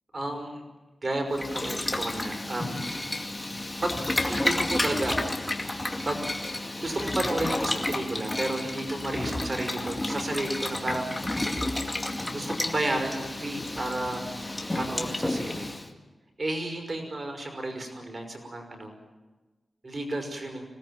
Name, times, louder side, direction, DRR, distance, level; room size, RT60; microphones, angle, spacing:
voice 1, 0.1-0.6 1.0-2.8 3.8-5.3 6.1-6.2 6.8-11.1 12.3-14.2 14.8-15.7 16.4-18.9 19.8-20.6, right 1 dB, 35° right, 4 dB, 5.7 m, -32 dB
Boiling, 1.3-15.9, left 1 dB, 15° left, 2.3 m, -31 dB
26.0 x 18.5 x 9.0 m, 1.2 s
wide cardioid pair, 155°, 0 cm